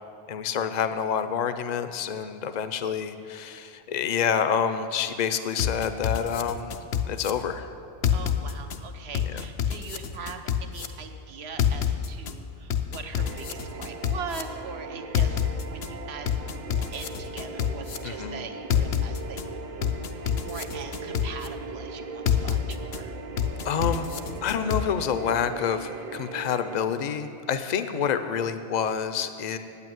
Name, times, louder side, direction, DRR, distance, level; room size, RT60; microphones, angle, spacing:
voice 1, 0.3-6.8 7.1-7.7 9.3-9.4 18.0-18.4 23.6-24.1 24.4-29.6, left 7 dB, 50° left, 10 dB, 0.6 m, -28 dB
sound 1, 5.6-7.3 8.0-8.8 9.1-10.9 11.6-12.3 12.7-14.4 15.1-15.9 16.3-18.0 18.7-19.4 19.8-21.5 22.3-23.0 23.4-24.8, left 9 dB, 75° left, 0.9 m, -26 dB
voice 2, 8.1-19.6 20.2-23.1, right 5 dB, 75° right, 6 dB, 1.1 m, -41 dB
sound 2, 13.2-26.8, right 4 dB, 50° right, 0.7 m, -39 dB
8.6 x 8.4 x 9.3 m, 2.7 s
omnidirectional pair, 1.1 m